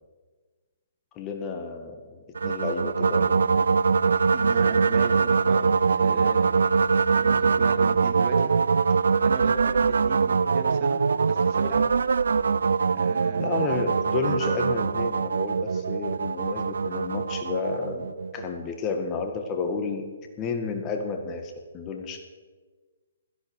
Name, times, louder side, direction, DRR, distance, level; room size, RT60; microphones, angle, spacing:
voice 1, 1.2-3.4 13.4-18.1 18.3-20.0 20.4-22.2, left 4 dB, 25° left, 5 dB, 1.8 m, -31 dB
sound 1, 2.3-18.6, right 5 dB, 75° right, 0.3 m, -23 dB
voice 2, 4.3-6.5 7.1-8.5 8.9-9.0 9.2-11.0 11.3-11.9 12.9-13.5, right 6 dB, 45° right, 5 dB, 2.3 m, -36 dB
16.0 x 14.0 x 4.9 m, 1.4 s
hypercardioid pair, 140°, 0 cm